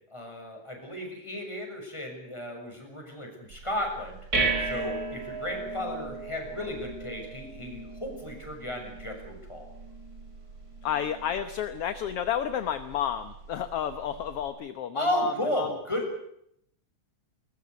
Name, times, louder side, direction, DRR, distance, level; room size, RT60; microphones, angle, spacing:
voice 1, 0.1-4.2 4.6-9.7 14.9-16.1, left 1 dB, 10° left, 2 dB, 6.4 m, -34 dB
sound 1, 3.5-14.5, right 3 dB, 25° right, 4.9 m, -36 dB
voice 2, 10.8-15.7, left 9 dB, 60° left, 11 dB, 1.7 m, -31 dB
21.0 x 20.5 x 8.2 m, 0.72 s
omnidirectional pair, 3.7 m